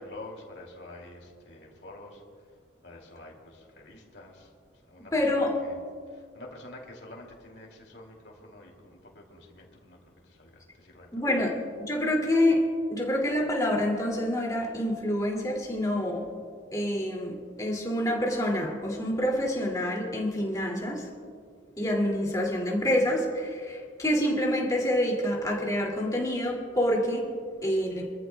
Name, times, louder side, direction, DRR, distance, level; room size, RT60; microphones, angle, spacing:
voice 1, 0.0-2.2 2.8-4.5 4.9-5.8 6.1-10.0 10.2-11.1, left 2 dB, 60° left, 0 dB, 2.6 m, -48 dB
voice 2, 5.1-5.5 11.1-12.6 12.9-16.3 16.7-21.1 21.8-27.3 27.6-28.1, left 1 dB, 20° left, -2 dB, 2.5 m, -27 dB
26.0 x 14.0 x 2.3 m, 2.1 s
head